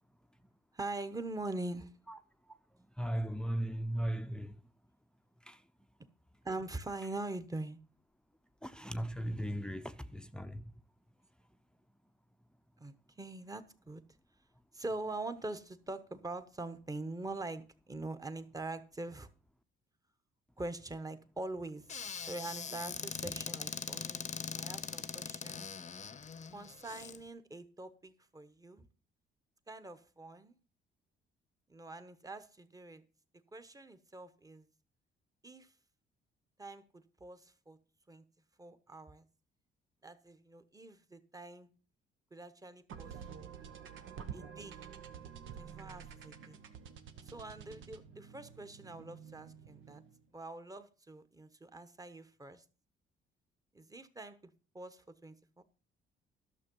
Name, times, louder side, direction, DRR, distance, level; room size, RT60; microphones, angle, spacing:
voice 1, 0.7-1.9 6.4-7.8 12.8-14.0 14.7-19.3 20.6-21.8 22.3-25.7 26.5-28.9 29.7-30.5 31.7-33.0 33.5-34.6 35.4-35.7 36.6-37.8 38.1-38.2 38.6-39.2 40.0-41.7 42.3-43.5 44.3-44.8 45.6-46.6 47.2-50.0 50.3-52.6 53.7-55.6, right 2 dB, 20° right, 1.1 m, -44 dB
voice 2, 3.0-4.6 5.5-5.6 8.6-10.7, right 1 dB, 5° left, 0.7 m, -37 dB
Squeak / Cupboard open or close, 21.9-27.2, left 6 dB, 35° left, 0.8 m, -42 dB
sound 1, 42.9-50.2, right 7 dB, 80° right, 1.2 m, -49 dB
12.0 x 6.5 x 5.4 m
cardioid pair, 90°, 20 cm